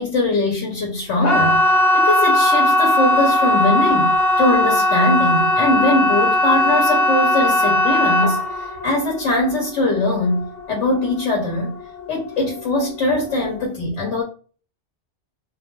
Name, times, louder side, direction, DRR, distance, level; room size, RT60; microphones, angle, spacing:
voice 1, 0.0-11.7 12.1-14.2, left 2 dB, 85° left, -1 dB, 1.0 m, -21 dB
sound 1, 1.2-12.0 12.3-12.9 13.3-13.4, left 1 dB, 65° left, 0.8 m, -18 dB
2.2 x 2.1 x 2.8 m, 0.39 s
omnidirectional pair, 1.2 m